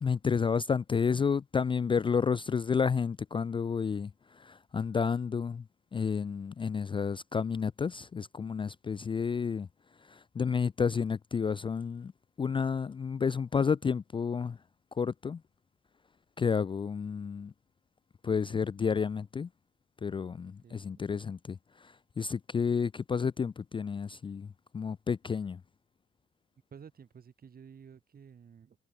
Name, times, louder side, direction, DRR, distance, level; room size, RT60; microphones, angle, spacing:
voice 1, 0.0-5.6 5.9-9.7 10.1-12.1 12.4-14.6 14.9-15.4 16.4-17.5 18.2-19.5 20.0-24.5 24.7-25.6, left 6 dB, 25° left, 0.4 m, -31 dB
voice 2, 18.5-19.0 20.6-21.0 26.7-28.8, right 7 dB, 50° right, 6.9 m, -53 dB
cardioid pair, 90°, 20 cm